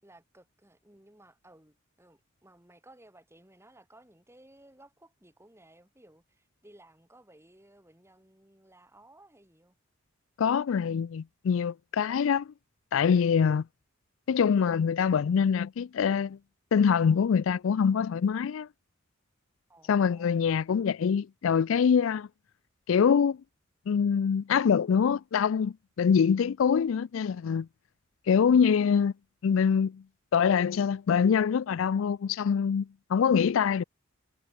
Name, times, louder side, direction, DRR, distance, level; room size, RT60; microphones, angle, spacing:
voice 1, 0.0-9.7 19.7-20.4, right 1 dB, 15° right, 4.6 m, -58 dB
voice 2, 10.4-12.5 12.9-13.7 14.3-16.4 16.7-18.7 19.9-22.3 22.9-23.4 23.9-27.7 28.3-29.1 29.4-30.1 30.3-33.8, left 7 dB, 70° left, 0.4 m, -24 dB
head